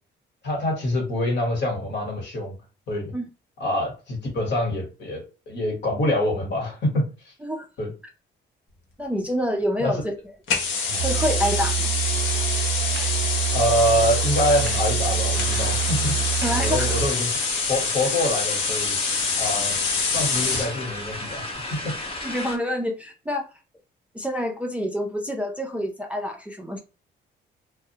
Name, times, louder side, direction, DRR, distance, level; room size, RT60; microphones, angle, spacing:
voice 1, 0.4-2.6 2.9-3.1 3.6-7.3 7.8-7.9 9.8-9.9 13.5-16.2 16.6-17.3 17.7-19.0 19.4-19.8 20.1-22.0, left 1 dB, 65° left, 1.1 m, -25 dB
voice 2, 9.0-10.1 11.0-11.9 16.4-17.0 22.2-23.5 24.1-26.8, equal, 5° right, 0.4 m, -27 dB
sound 1, 10.5-20.7, left 5 dB, 80° left, 0.7 m, -26 dB
Musical instrument, 10.9-17.2, right 11 dB, 85° right, 0.4 m, -27 dB
sound 2, 15.3-22.6, left 1 dB, 30° left, 0.7 m, -35 dB
2.2 x 2.0 x 2.7 m
cardioid pair, 90°, 20 cm